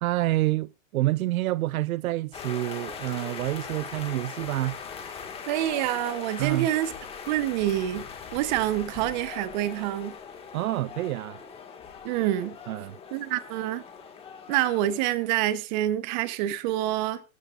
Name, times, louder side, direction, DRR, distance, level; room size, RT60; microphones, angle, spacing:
voice 1, 0.0-4.8 6.4-6.7 10.5-11.4 12.7-13.0, right 16 dB, 80° right, 0.5 m, -28 dB
sound 1, 2.3-15.3, left 6 dB, 15° left, 1.8 m, -41 dB
voice 2, 5.5-6.9 7.3-8.0 8.3-10.2 12.0-12.6 13.1-13.8 14.5-17.2, right 13 dB, 35° right, 1.0 m, -27 dB
19.0 x 14.0 x 2.5 m
hypercardioid pair, 155°, 41 cm